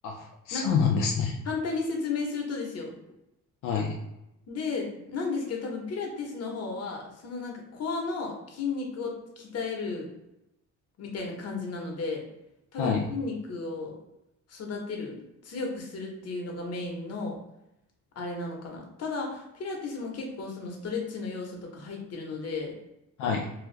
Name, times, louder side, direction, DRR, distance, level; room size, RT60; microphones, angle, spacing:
voice 1, 0.0-1.4 3.6-3.9 12.8-13.0 23.2-23.5, left 6 dB, 90° left, 0 dB, 0.5 m, -27 dB
voice 2, 1.4-3.0 4.5-10.1 11.0-12.3 12.7-13.9 14.5-15.2 15.4-17.4 18.2-22.7, left 4 dB, 55° left, 0 dB, 1.0 m, -34 dB
2.7 x 2.3 x 3.2 m, 0.87 s
cardioid pair, 90°, 30 cm